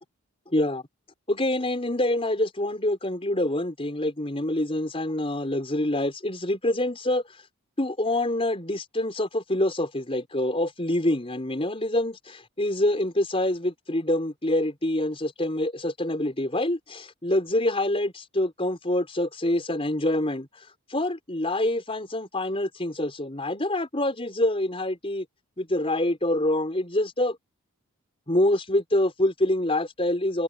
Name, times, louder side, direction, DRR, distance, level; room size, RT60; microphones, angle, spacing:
voice 1, 0.5-0.8 1.3-7.4 7.8-25.3 25.6-27.4 28.3-30.4, left 1 dB, 25° left, 5.1 m, -26 dB
head